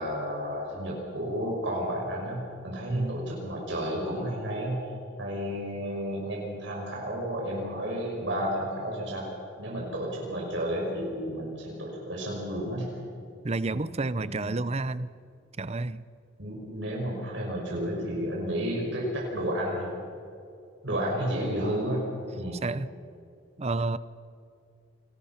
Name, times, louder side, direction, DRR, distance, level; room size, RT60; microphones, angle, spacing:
voice 1, 0.0-4.8 5.2-9.3 9.6-13.0 13.7-13.9 14.2-14.5 16.4-19.9 20.8-22.0 22.3-22.6, equal, 70° right, -3 dB, 6.1 m, -32 dB
voice 2, 2.9-3.2 13.4-15.1 15.6-16.0 22.6-22.9 23.6-24.0, right 3 dB, 35° right, 16 dB, 0.7 m, -30 dB
30.0 x 22.5 x 5.9 m, 2.5 s
head